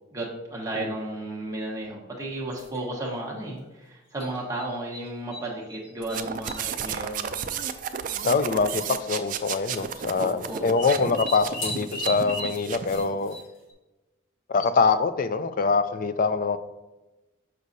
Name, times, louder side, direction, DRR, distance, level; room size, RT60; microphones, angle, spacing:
voice 1, 0.1-7.3 10.2-10.8, right 1 dB, 15° right, -3 dB, 1.2 m, -34 dB
sound 1, 2.5-2.8 4.2-5.4 5.7-6.7 7.6-7.7 7.9-8.0 8.9-9.2 10.5-13.7, equal, 70° left, 1.9 m, -36 dB
sound 2, 6.0-13.0, right 7 dB, 40° right, 0.3 m, -33 dB
voice 2, 8.2-13.4 14.5-16.6, left 4 dB, 40° left, 12 dB, 0.3 m, -24 dB
6.3 x 6.2 x 2.7 m, 1.1 s
head